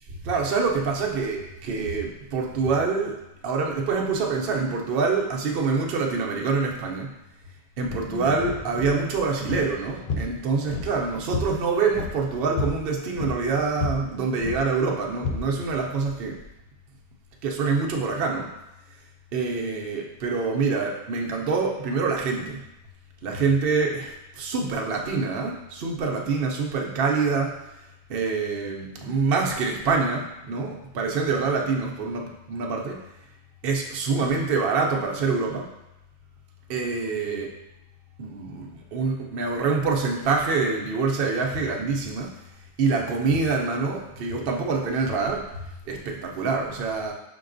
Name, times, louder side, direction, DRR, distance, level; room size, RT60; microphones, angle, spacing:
voice 1, 0.2-3.2 3.4-7.1 7.8-16.4 17.4-18.5 19.3-22.6 23.2-27.6 28.1-33.0 33.6-35.7 36.7-37.5 38.2-42.4 42.8-47.1, right 4 dB, 60° right, 0 dB, 0.8 m, -26 dB
sound 1, 7.8-16.5, left 4 dB, 60° left, 0.4 m, -34 dB
5.3 x 3.8 x 2.5 m, 0.92 s
omnidirectional pair, 1.2 m